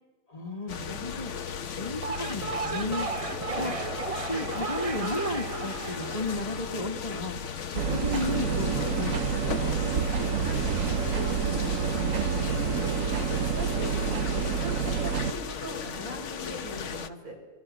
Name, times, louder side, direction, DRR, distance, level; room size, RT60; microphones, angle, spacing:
voice 1, 0.3-1.3 1.6-3.1 3.5-3.7 4.1-7.4 7.7-9.7, left 2 dB, 30° left, 5 dB, 1.5 m, -34 dB
sound 1, 0.7-17.1, left 7 dB, 60° left, 1.3 m, -36 dB
sound 2, 1.9-7.2, right 4 dB, 35° right, 0.7 m, -35 dB
sound 3, 7.7-15.3, right 6 dB, 70° right, 1.3 m, -28 dB
voice 2, 10.4-13.0 13.4-17.4, right 1 dB, 85° right, -1 dB, 7.2 m, -40 dB
25.0 x 23.5 x 6.2 m, 1.2 s
omnidirectional pair, 1.4 m